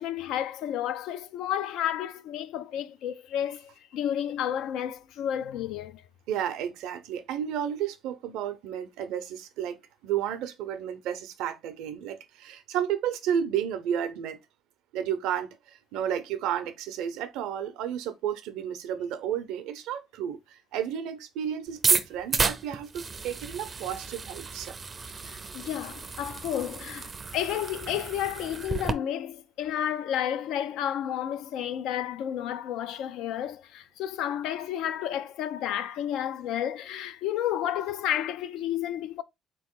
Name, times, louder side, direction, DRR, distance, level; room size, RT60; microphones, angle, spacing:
voice 1, 0.0-6.0 25.2-39.2, left 10 dB, 80° left, 0.4 m, -31 dB
voice 2, 6.3-14.4 14.9-24.8, right 9 dB, 90° right, 0.6 m, -32 dB
sound 1, 21.7-28.9, right 4 dB, 30° right, 0.4 m, -32 dB
3.9 x 2.9 x 3.6 m
cardioid pair, 100°, 0 cm